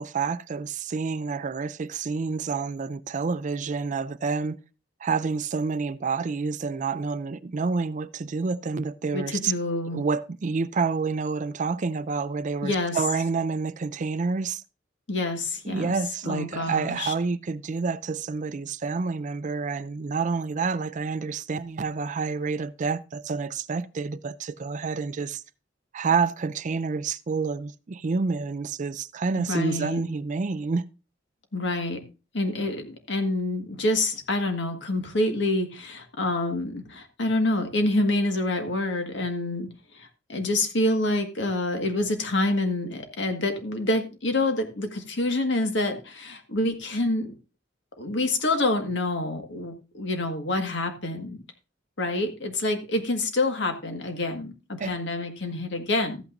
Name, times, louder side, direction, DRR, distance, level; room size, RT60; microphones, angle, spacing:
voice 1, 0.0-4.6 5.0-9.5 9.9-14.6 15.6-25.4 25.9-30.8 54.8-55.0, right 4 dB, 40° right, 0.4 m, -28 dB
voice 2, 9.1-10.0 12.6-13.0 15.1-15.9 16.2-17.1 29.4-30.0 31.5-32.0 32.3-39.7 39.9-47.3 48.0-51.4 52.0-56.2, left 2 dB, 70° left, 1.7 m, -27 dB
14.0 x 8.7 x 2.6 m
head